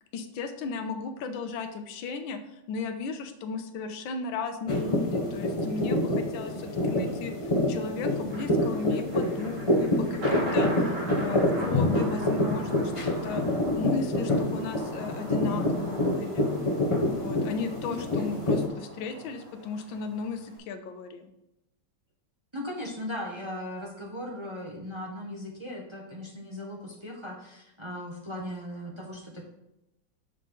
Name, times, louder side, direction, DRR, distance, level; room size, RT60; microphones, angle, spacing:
voice 1, 0.1-7.3 7.7-13.4 13.8-16.5 17.0-21.3, left 4 dB, 80° left, 7 dB, 1.5 m, -35 dB
sound 1, 4.7-18.7, left 1 dB, 30° left, 0.5 m, -27 dB
Thunder, 8.3-20.6, right 2 dB, 80° right, 3.1 m, -41 dB
voice 2, 22.5-29.4, left 1 dB, 20° right, -2 dB, 0.9 m, -38 dB
6.9 x 6.3 x 3.9 m, 0.88 s
omnidirectional pair, 2.1 m